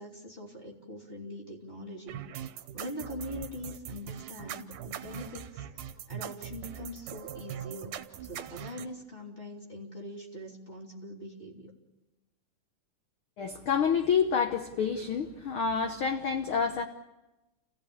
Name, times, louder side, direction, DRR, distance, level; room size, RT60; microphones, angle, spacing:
voice 1, 0.0-2.2 2.5-5.6 6.1-7.9 8.2-11.7, left 1 dB, 15° left, 2.9 m, -42 dB
sound 1, 2.1-8.9, right 10 dB, 75° right, 2.5 m, -41 dB
voice 2, 13.4-16.9, left 6 dB, 80° left, 1.2 m, -28 dB
29.0 x 16.5 x 8.6 m
omnidirectional pair, 3.9 m